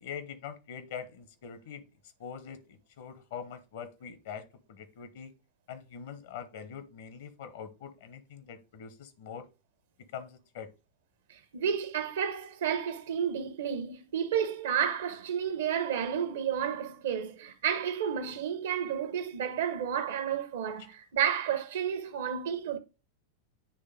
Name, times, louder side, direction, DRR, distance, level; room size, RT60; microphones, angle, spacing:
voice 1, 0.0-1.9 2.2-5.3 5.7-9.5 10.1-10.7, left 7 dB, 55° left, 1.1 m, -43 dB
voice 2, 11.3-22.8, right 8 dB, 60° right, 1.0 m, -31 dB
9.7 x 3.4 x 3.6 m
figure-of-eight pair, 90°, 0 cm